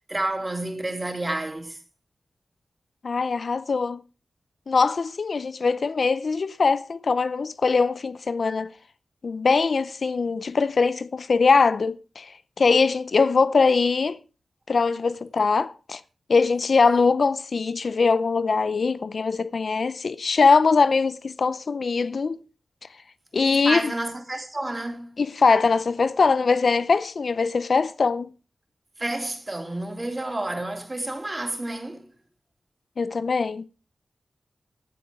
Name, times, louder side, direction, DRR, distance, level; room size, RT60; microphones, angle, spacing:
voice 1, 0.0-1.8 23.4-25.1 29.0-32.0, right 2 dB, 25° right, 3.3 m, -30 dB
voice 2, 3.0-4.0 4.7-8.7 9.2-12.3 12.6-14.2 14.7-16.0 16.3-22.4 23.3-23.9 25.2-28.3 33.0-33.7, left 4 dB, 65° left, 0.6 m, -22 dB
15.5 x 7.9 x 4.8 m
wide cardioid pair, 80°, 0 cm